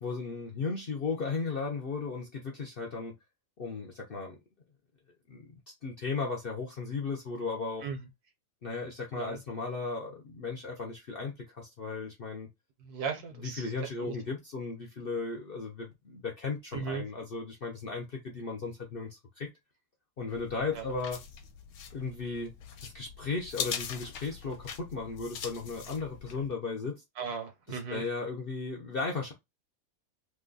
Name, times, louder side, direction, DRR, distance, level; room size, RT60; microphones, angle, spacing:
voice 1, 0.0-3.1 3.6-4.4 5.3-5.5 5.8-7.8 8.6-12.5 13.4-19.5 20.2-21.2 21.9-22.5 22.8-27.0 27.7-29.3, left 4 dB, 55° left, 0.6 m, -36 dB
voice 2, 12.8-14.2 16.7-17.0 20.7-21.0 27.2-28.0, right 6 dB, 75° right, 1.5 m, -37 dB
sound 1, 20.3-26.5, left 7 dB, 75° left, 1.0 m, -42 dB
3.1 x 2.2 x 3.8 m
omnidirectional pair, 1.7 m